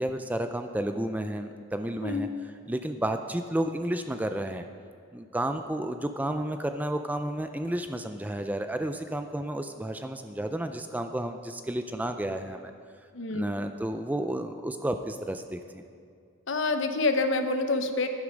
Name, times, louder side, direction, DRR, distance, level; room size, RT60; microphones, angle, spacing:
voice 1, 0.0-2.3 2.7-4.7 5.1-12.7 13.3-15.8, right 1 dB, 10° right, 7 dB, 0.3 m, -31 dB
voice 2, 2.0-2.3 13.1-13.5 16.5-18.1, left 3 dB, 60° left, 7 dB, 0.9 m, -27 dB
11.5 x 9.6 x 5.1 m, 2.3 s
head